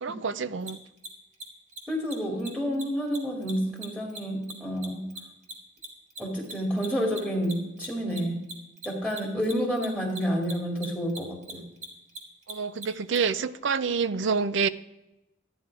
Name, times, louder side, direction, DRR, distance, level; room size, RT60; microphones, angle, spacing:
voice 1, 0.0-0.8 12.5-14.7, right 5 dB, 85° right, 0.6 m, -27 dB
Mechanisms, 0.6-0.7 1.0-1.1 1.3-1.4 1.7-2.1 2.4-2.5 2.7-2.8 3.1-5.9 6.1-13.2, right 2 dB, 40° right, 2.0 m, -39 dB
voice 2, 1.9-5.1 6.2-8.4 8.8-11.6, equal, 5° right, 2.3 m, -29 dB
13.0 x 9.6 x 4.8 m
head